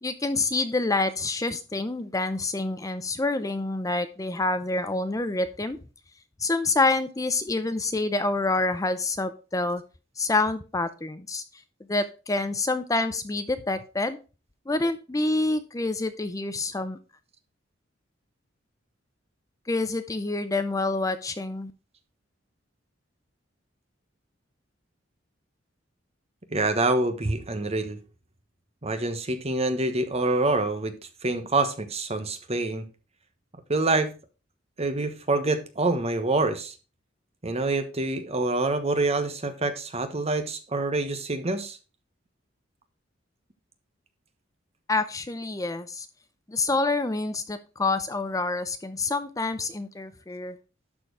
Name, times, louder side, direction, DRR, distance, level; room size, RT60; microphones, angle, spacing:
voice 1, 0.0-5.8 6.4-9.8 10.2-11.4 11.9-14.2 14.7-17.0 19.7-21.7 44.9-46.1 46.5-50.6, left 2 dB, 20° left, 10 dB, 0.6 m, -27 dB
voice 2, 26.5-28.0 28.8-30.9 31.2-32.8 33.7-34.1 34.8-36.7 37.4-41.8, right 2 dB, 35° right, 8 dB, 1.2 m, -26 dB
12.0 x 4.5 x 4.7 m, 0.32 s
head